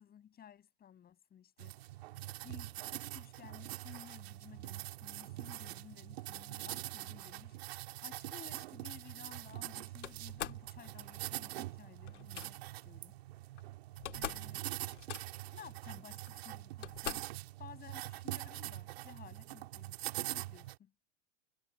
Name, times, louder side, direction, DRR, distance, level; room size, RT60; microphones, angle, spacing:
voice 1, 0.0-1.8 2.4-13.1 14.1-14.7 15.5-17.3 17.6-20.9, left 9 dB, 25° left, 7.2 m, -55 dB
sound 1, 1.6-20.8, right 17 dB, 55° right, 2.0 m, -44 dB
Slam, 10.0-10.7 12.1-12.5 13.6-13.7 13.9-14.5 14.8-15.5 16.3-16.4 16.8-17.4, left 11 dB, 70° left, 2.1 m, -43 dB
figure-of-eight pair, 100°, 38 cm